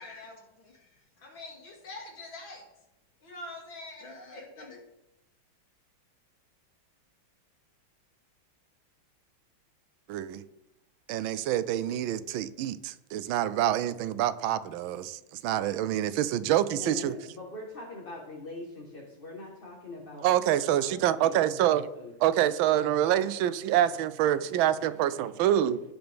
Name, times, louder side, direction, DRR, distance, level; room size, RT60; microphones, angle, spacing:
voice 1, 0.0-2.6 3.2-4.8, left 2 dB, 70° left, -1 dB, 3.2 m, -45 dB
voice 2, 10.1-10.4 11.1-17.1 20.2-21.9 22.2-25.8, right 12 dB, 80° right, 13 dB, 1.4 m, -26 dB
voice 3, 16.8-22.1, left 2 dB, 30° left, -2 dB, 1.4 m, -43 dB
17.0 x 6.0 x 3.5 m, 0.89 s
omnidirectional pair, 2.2 m